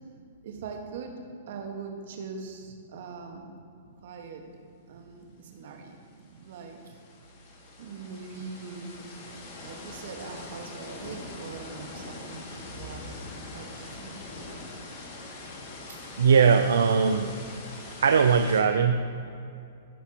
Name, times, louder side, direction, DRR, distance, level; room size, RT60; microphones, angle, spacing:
voice 1, 0.4-1.2 1.5-3.5 4.0-4.4 4.9-6.0 6.3-7.0 7.8-9.1 9.6-13.2 13.5-14.2, right 5 dB, 60° right, 3 dB, 1.3 m, -41 dB
sound 1, 5.7-5.8 6.0-18.6, left 2 dB, 40° left, 1.6 m, -43 dB
voice 2, 16.2-17.4 17.7-19.3, right 6 dB, 80° right, 7 dB, 0.4 m, -21 dB
15.0 x 5.9 x 2.9 m, 2.5 s
hypercardioid pair, 135°, 0 cm